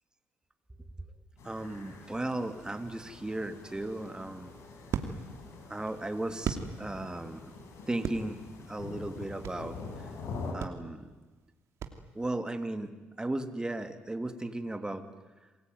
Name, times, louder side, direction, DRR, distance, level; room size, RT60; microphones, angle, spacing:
sound 1, 1.4-10.5, left 4 dB, 70° left, 6.1 m, -45 dB
voice 1, 1.4-4.5 5.7-7.5 7.8-8.4 8.7-9.8 10.5-11.0 12.1-12.9 13.2-15.0, right 2 dB, 15° right, 8 dB, 2.9 m, -35 dB
sound 2, 3.8-7.2 7.6-9.8 10.1-10.2 10.6-12.4, right 7 dB, 65° right, 2.7 m, -38 dB
28.5 x 21.0 x 9.5 m, 1.3 s
supercardioid pair, 60°, 5 cm